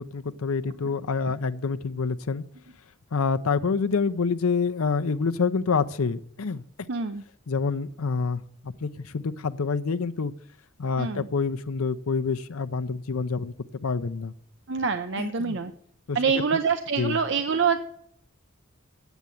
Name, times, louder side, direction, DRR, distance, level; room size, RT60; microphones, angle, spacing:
voice 1, 0.0-2.4 3.1-6.9 7.5-10.3 10.8-13.5 13.8-14.3 15.2-15.6 16.1-16.4 17.0-17.2, left 4 dB, 90° left, 12 dB, 0.6 m, -27 dB
voice 2, 6.9-7.2 11.0-11.3 14.7-15.7 16.1-17.9, right 5 dB, 55° right, 8 dB, 0.6 m, -25 dB
8.4 x 8.1 x 9.0 m, 0.67 s
head